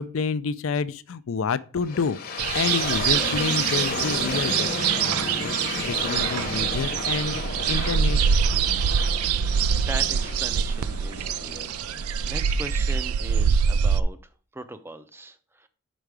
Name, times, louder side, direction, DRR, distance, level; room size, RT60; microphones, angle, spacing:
voice 1, 0.0-2.2 2.5-7.4 7.7-8.2, left 5 dB, 65° left, 0.4 m, -29 dB
sound 1, 1.8-12.7, left 3 dB, 45° left, 0.9 m, -33 dB
sound 2, 2.4-14.0, right 7 dB, 85° right, 0.3 m, -24 dB
voice 2, 9.5-14.2 14.5-15.7, right 1 dB, 10° right, 0.5 m, -39 dB
5.6 x 5.1 x 4.7 m
head